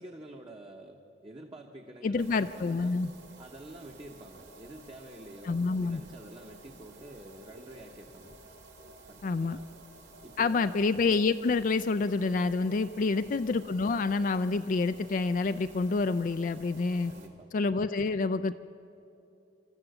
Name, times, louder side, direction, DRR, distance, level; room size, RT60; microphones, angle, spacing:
voice 1, 0.0-3.0 3.4-8.4 9.0-9.7 10.2-10.8 13.0-13.3 17.1-17.5, right 1 dB, 30° right, 2 dB, 1.1 m, -48 dB
voice 2, 2.0-3.1 5.5-6.0 9.2-9.6 10.4-17.1 17.5-18.5, left 4 dB, 50° left, 10 dB, 0.4 m, -28 dB
sound 1, 2.2-17.3, right 2 dB, 80° right, 2.4 m, -53 dB
26.0 x 13.0 x 8.0 m, 2.9 s
head